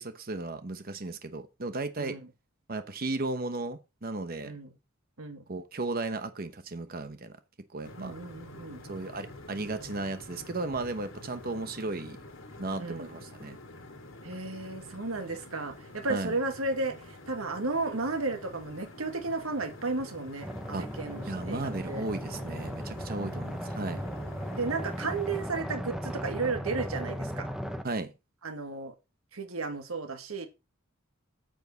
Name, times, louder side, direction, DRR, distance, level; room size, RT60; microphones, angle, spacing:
voice 1, 0.0-2.2 2.7-4.5 5.5-7.3 7.7-8.1 8.9-12.2 12.6-13.6 16.0-16.3 20.7-20.9 21.3-24.0 27.8-28.1, right 2 dB, 45° right, 0.9 m, -35 dB
sound 1, 7.8-25.4, left 2 dB, 70° left, 3.0 m, -47 dB
voice 2, 8.0-8.8 12.8-13.1 14.2-22.0 24.5-27.5 28.4-28.9 29.3-30.5, right 3 dB, 85° right, 1.7 m, -34 dB
sound 2, 20.4-27.8, equal, ahead, 0.8 m, -37 dB
9.2 x 7.9 x 4.0 m
head